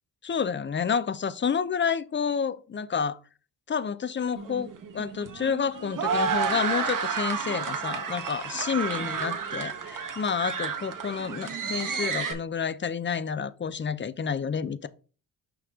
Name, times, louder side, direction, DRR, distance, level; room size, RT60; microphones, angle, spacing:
voice 1, 0.2-3.2 3.7-4.7 4.9-14.9, left 6 dB, 30° left, 0.6 m, -29 dB
sound 1, 4.4-12.3, right 5 dB, 60° right, 1.3 m, -31 dB
6.0 x 5.3 x 3.6 m
cardioid pair, 70°, 36 cm